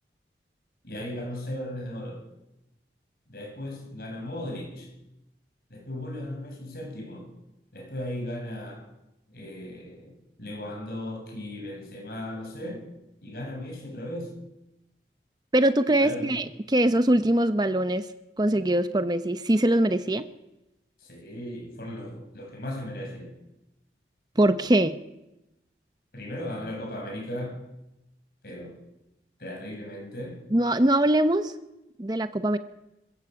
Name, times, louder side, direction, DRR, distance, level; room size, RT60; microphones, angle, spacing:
voice 1, 0.8-2.2 3.3-4.9 5.7-7.3 7.7-8.9 9.3-10.1 10.4-12.9 13.2-14.3 15.9-16.3 21.0-23.3 26.1-27.6 28.4-28.8 29.4-30.4, left 1 dB, 55° left, 7.6 m, -36 dB
voice 2, 15.5-18.1 18.4-20.2 24.4-25.0 30.5-31.5 32.0-32.6, right 1 dB, 25° right, 0.8 m, -22 dB
26.5 x 15.0 x 8.4 m
head